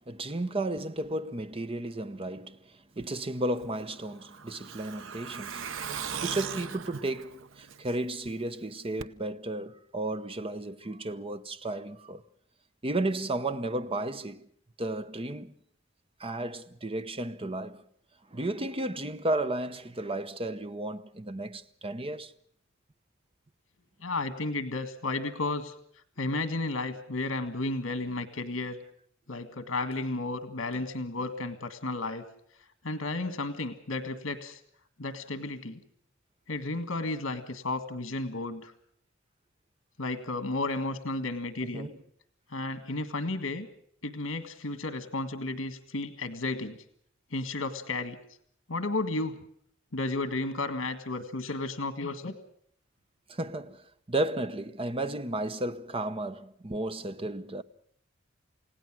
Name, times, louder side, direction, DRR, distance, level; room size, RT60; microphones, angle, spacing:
voice 1, 0.1-5.7 6.1-12.2 12.8-14.5 14.8-15.5 16.2-17.8 18.3-22.3 41.6-42.0 53.3-57.6, right 1 dB, 30° right, 0.9 m, -33 dB
Truck, 3.6-8.3 8.6-8.7 9.0-9.1, right 7 dB, 70° right, 0.8 m, -39 dB
voice 2, 24.0-25.7 26.2-28.8 29.3-32.3 32.8-34.6 35.0-35.8 36.5-38.7 40.0-41.9 42.5-43.7 44.0-46.8 47.3-48.2 48.7-49.4 49.9-52.4, left 2 dB, 70° left, 1.8 m, -33 dB
29.5 x 17.0 x 6.2 m
head